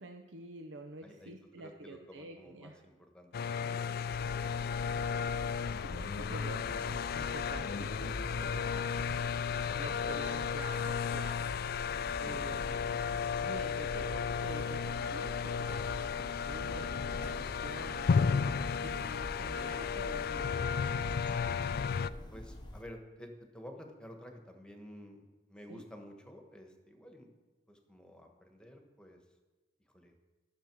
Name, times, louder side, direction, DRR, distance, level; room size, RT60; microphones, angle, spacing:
voice 1, 0.0-2.8 5.8-9.2 9.4-21.9 25.7-25.9, right 2 dB, 85° right, 4 dB, 0.7 m, -48 dB
voice 2, 1.0-4.4 12.2-12.7 19.7-20.1 22.3-27.3 27.7-29.2 29.9-30.1, equal, 5° left, 3 dB, 1.3 m, -52 dB
sound 1, 3.3-22.1, left 6 dB, 55° left, 0.3 m, -34 dB
sound 2, 4.1-22.8, left 1 dB, 25° left, 0.7 m, -45 dB
12.5 x 6.3 x 6.1 m, 1.2 s
head